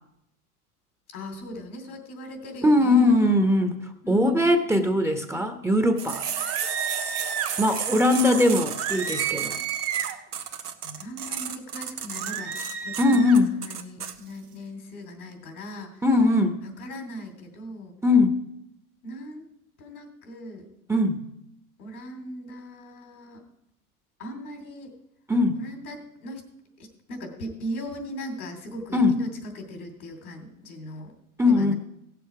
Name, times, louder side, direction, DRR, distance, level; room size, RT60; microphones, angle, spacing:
voice 1, 1.1-3.1 4.0-4.5 9.5-9.6 10.8-12.5 12.8-13.2 13.5-16.0 16.6-17.9 19.0-19.5 19.8-20.7 21.8-23.4 24.2-24.9 25.5-26.4 26.8-31.1 31.5-31.7, equal, 80° left, 5 dB, 2.8 m, -38 dB
voice 2, 2.6-3.8 4.1-6.2 7.6-9.5 13.0-13.5 16.0-16.6 18.0-18.4 20.9-21.2 25.3-25.6 28.9-29.2 31.4-31.7, left 2 dB, 5° right, 6 dB, 1.0 m, -20 dB
sound 1, 6.0-14.1, right 7 dB, 90° right, 1.0 m, -33 dB
sound 2, 6.4-7.6 8.8-10.2 12.2-13.4, right 8 dB, 30° right, 1.1 m, -31 dB
16.0 x 6.9 x 4.8 m, 0.80 s
hypercardioid pair, 90°, 45 cm